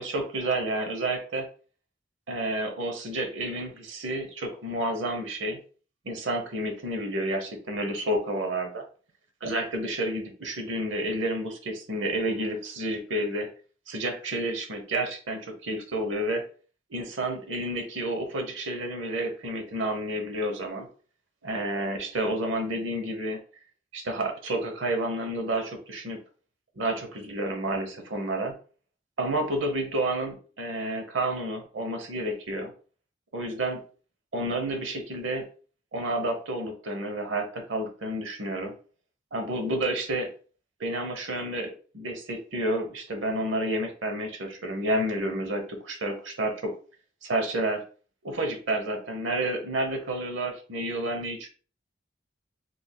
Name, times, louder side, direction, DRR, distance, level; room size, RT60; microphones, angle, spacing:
voice 1, 0.0-1.5 2.3-5.6 6.0-8.8 9.4-13.5 13.9-16.4 16.9-20.9 21.4-23.4 23.9-26.2 26.8-28.6 29.2-32.7 33.3-33.8 34.3-35.5 35.9-38.7 39.3-40.3 40.8-46.7 47.2-47.8 48.2-51.5, right 1 dB, 75° right, 5 dB, 0.8 m, -30 dB
3.8 x 3.3 x 2.2 m, 0.40 s
head